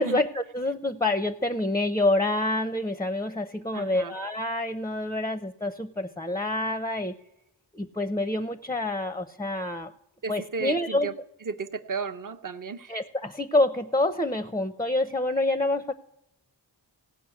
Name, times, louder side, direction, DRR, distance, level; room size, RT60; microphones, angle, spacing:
voice 1, 0.0-7.1 7.7-9.9 10.3-11.1 12.9-15.9, left 2 dB, 10° left, 10 dB, 0.6 m, -27 dB
voice 2, 3.7-4.1 10.2-11.1 11.4-13.0, right 5 dB, 45° right, 9 dB, 0.8 m, -34 dB
16.5 x 5.5 x 8.3 m, 0.84 s
cardioid pair, 45°, 45 cm